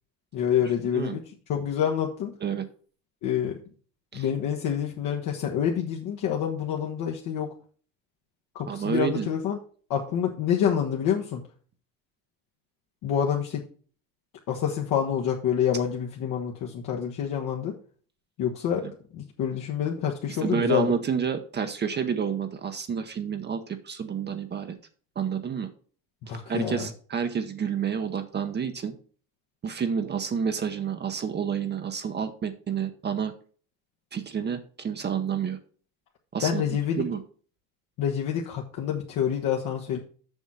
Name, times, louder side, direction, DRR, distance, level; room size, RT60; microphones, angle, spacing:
voice 1, 0.3-1.2 1.5-2.3 3.2-3.6 4.1-7.5 8.5-9.6 9.9-11.4 13.0-13.6 14.5-17.7 18.4-18.9 19.1-20.9 26.2-26.9 36.4-37.0 38.0-40.0, left 8 dB, 60° left, -1 dB, 1.4 m, -27 dB
voice 2, 0.8-1.2 2.4-2.7 4.1-4.2 8.7-9.3 18.8-18.9 20.3-24.8 25.2-25.7 26.5-29.0 29.6-33.3 34.1-35.6 36.3-37.2, right 7 dB, 30° right, 7 dB, 0.9 m, -29 dB
7.2 x 6.2 x 5.6 m, 0.43 s
cardioid pair, 135°, 36 cm